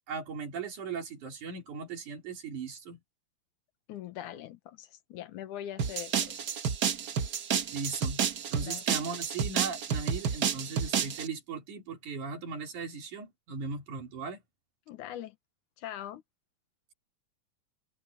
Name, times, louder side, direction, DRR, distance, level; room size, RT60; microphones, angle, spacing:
voice 1, 0.1-3.0 7.7-8.2 8.5-14.4, right 5 dB, 75° right, 4.8 m, -38 dB
voice 2, 3.9-6.4 8.6-8.8 14.9-15.4 15.8-16.2, left 12 dB, 85° left, 2.6 m, -42 dB
sound 1, 5.8-11.3, right 7 dB, 60° right, 1.0 m, -30 dB
open air
omnidirectional pair, 3.5 m